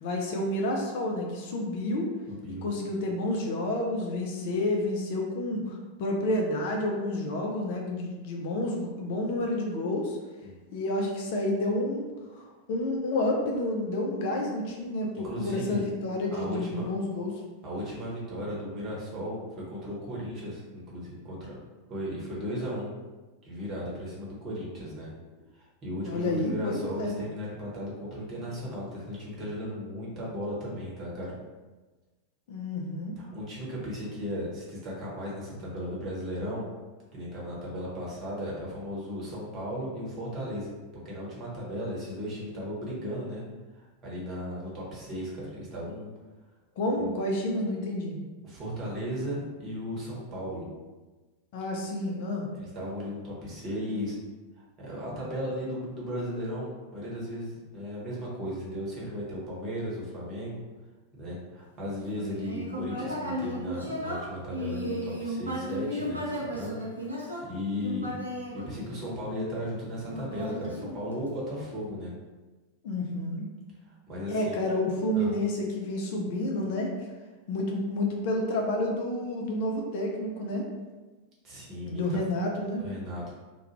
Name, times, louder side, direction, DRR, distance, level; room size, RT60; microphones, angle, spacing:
voice 1, 0.0-2.1 2.5-10.2 10.7-12.1 12.3-17.3 26.0-27.1 32.5-33.1 46.8-48.2 51.5-52.5 72.8-73.4 74.3-76.9 77.5-80.6 81.9-82.8, left 1 dB, 50° left, 0 dB, 0.4 m, -30 dB
voice 2, 2.3-2.7 10.4-10.5 15.1-15.8 16.3-16.9 17.6-19.4 19.7-21.4 21.9-22.9 23.4-25.1 25.5-31.3 33.2-36.7 37.1-40.7 41.0-43.4 43.7-46.1 47.0-47.1 48.4-50.7 52.5-54.2 54.8-60.6 61.1-66.8 67.1-68.1 68.5-72.1 73.8-74.6 75.1-75.3 81.4-82.2 82.8-83.3, equal, 30° right, -5 dB, 1.0 m, -36 dB
Human voice, 62.1-69.4 70.0-71.5, equal, 80° right, 0.5 m, -35 dB
2.3 x 2.2 x 2.9 m, 1.2 s
figure-of-eight pair, 90°, 0 cm